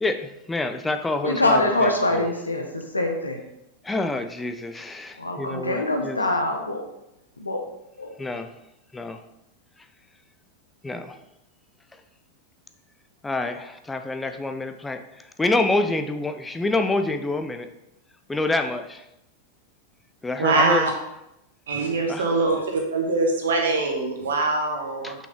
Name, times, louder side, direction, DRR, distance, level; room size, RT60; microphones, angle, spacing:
voice 1, 0.0-1.9 3.9-6.2 8.2-8.5 8.9-9.2 10.8-11.2 13.2-15.0 15.4-17.7 18.3-19.0 20.2-20.9 22.1-22.3 25.0-25.1, left 2 dB, 10° left, 7 dB, 0.5 m, -27 dB
voice 2, 1.2-3.4 5.2-6.8 7.4-7.6 8.0-8.1, left 2 dB, 80° left, 4 dB, 1.0 m, -24 dB
voice 3, 20.4-20.9 21.7-22.6 22.9-25.1, right 3 dB, 65° right, 2 dB, 1.4 m, -23 dB
6.1 x 5.6 x 3.7 m, 0.87 s
figure-of-eight pair, 90°, 0 cm